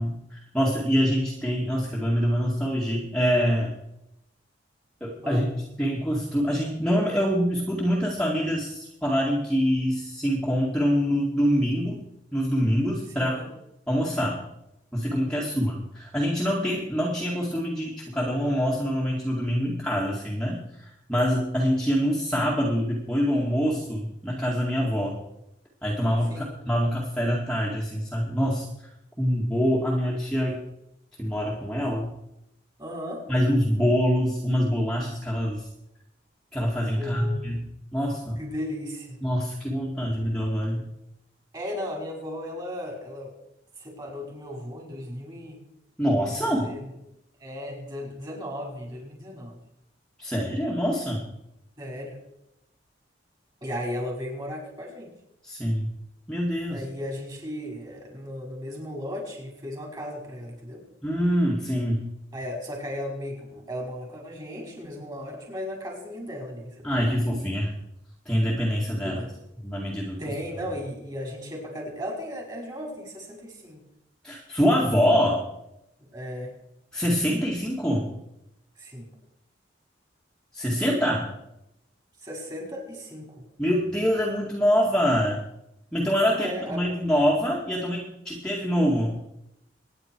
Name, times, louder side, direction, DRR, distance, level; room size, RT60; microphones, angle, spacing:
voice 1, 0.0-3.7 5.0-5.5 5.8-12.0 12.3-13.4 13.9-14.4 14.9-25.2 25.8-28.7 29.2-30.6 31.2-32.1 33.3-35.7 36.5-37.6 37.9-38.4 39.2-40.9 46.0-46.7 50.2-51.2 55.4-55.9 56.3-56.8 61.0-62.0 66.8-67.7 68.3-69.2 69.6-70.2 74.2-75.4 76.9-78.1 80.5-81.3 83.6-85.4 85.9-89.2, equal, 5° left, -4 dB, 2.1 m, -25 dB
voice 2, 13.2-13.5 15.4-15.6 26.3-26.5 32.8-33.3 37.0-37.4 38.4-39.2 41.5-43.3 43.8-45.6 46.3-47.0 47.4-49.6 51.8-52.2 53.6-55.1 56.7-60.8 62.3-67.1 69.0-69.3 70.2-73.8 76.1-76.5 78.8-79.1 82.2-83.3 86.3-86.8, equal, 25° right, 0 dB, 5.2 m, -36 dB
24.5 x 10.0 x 4.7 m, 0.84 s
head